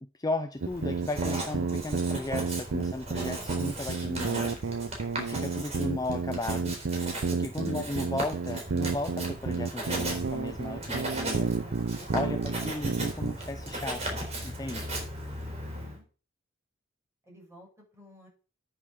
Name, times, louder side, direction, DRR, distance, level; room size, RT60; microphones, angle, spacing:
voice 1, 0.0-4.5 5.2-6.8 7.3-11.5 12.1-14.9, left 2 dB, 20° left, 8 dB, 0.6 m, -35 dB
Writing, 0.6-16.0, right 1 dB, 35° right, 4.2 m, -37 dB
sound 1, 0.6-13.3, right 4 dB, 70° right, 0.6 m, -31 dB
voice 2, 15.6-16.1 17.2-18.3, equal, 15° right, -2 dB, 6.3 m, -54 dB
9.1 x 7.3 x 6.4 m, 0.37 s
head